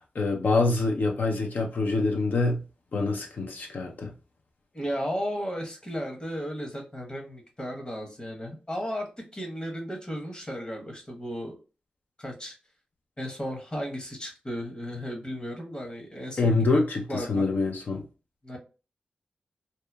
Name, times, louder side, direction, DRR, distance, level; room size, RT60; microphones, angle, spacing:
voice 1, 0.1-2.6 2.9-4.1 16.4-18.0, left 3 dB, 65° left, 0.5 m, -25 dB
voice 2, 4.7-11.6 12.2-12.5 13.2-16.8 17.1-17.5 18.4-18.6, equal, 30° left, 1.0 m, -34 dB
2.8 x 2.0 x 2.2 m
cardioid pair, 45°, 3 cm